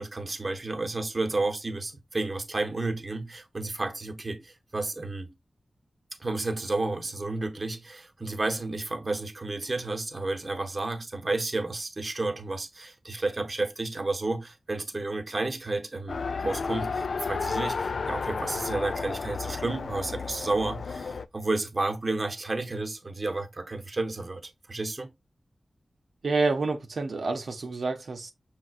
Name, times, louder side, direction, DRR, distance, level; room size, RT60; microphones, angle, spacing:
voice 1, 0.0-5.3 6.2-25.1, right 2 dB, 35° right, 0.8 m, -31 dB
Race car auto racing, 16.1-21.3, left 4 dB, 70° left, 0.3 m, -32 dB
voice 2, 26.2-28.3, right 3 dB, 75° right, 0.7 m, -28 dB
6.3 x 3.4 x 2.4 m
wide cardioid pair, 110°, 0 cm